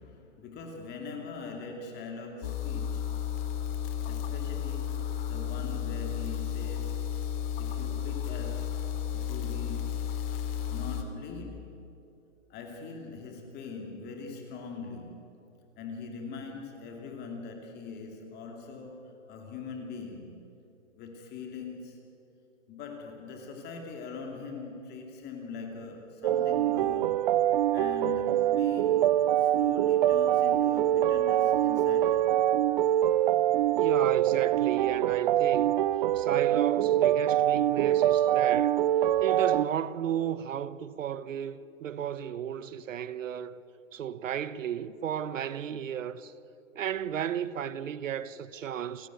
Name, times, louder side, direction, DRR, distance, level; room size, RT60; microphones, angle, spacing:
voice 1, 0.0-3.2 4.1-7.1 7.6-8.8 9.1-10.0 10.7-11.7 12.5-15.3 15.8-20.4 20.9-22.0 22.7-27.3 27.7-32.4, left 4 dB, 25° left, 2.6 m, -42 dB
sound 1, 2.4-11.0, left 9 dB, 45° left, 2.8 m, -33 dB
sound 2, 26.2-39.7, right 12 dB, 40° right, 0.5 m, -24 dB
voice 2, 33.7-35.7 36.1-38.8 39.2-43.6 43.9-46.3 46.7-49.1, right 9 dB, 75° right, 1.3 m, -34 dB
29.0 x 15.5 x 9.3 m
hypercardioid pair, 140°, 39 cm